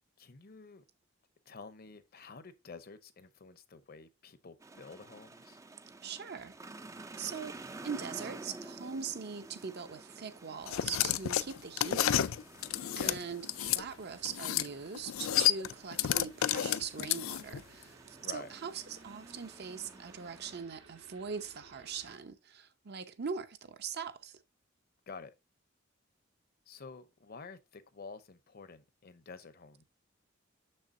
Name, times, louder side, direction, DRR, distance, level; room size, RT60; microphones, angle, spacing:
voice 1, 0.2-0.8 1.5-5.6 12.9-13.2 18.2-18.5 25.1-25.3 26.7-29.8, left 4 dB, 50° left, 0.7 m, -49 dB
sound 1, 4.6-20.6, right 2 dB, 15° right, 0.4 m, -51 dB
voice 2, 6.0-6.5 7.2-7.6 7.8-12.3 13.0-24.4, right 6 dB, 55° right, 0.7 m, -41 dB
sound 2, 10.7-13.8 14.2-14.7 14.9-17.6, left 11 dB, 85° left, 0.4 m, -30 dB
sound 3, 13.5-22.1, right 4 dB, 80° right, 1.6 m, -60 dB
6.7 x 6.6 x 2.7 m
head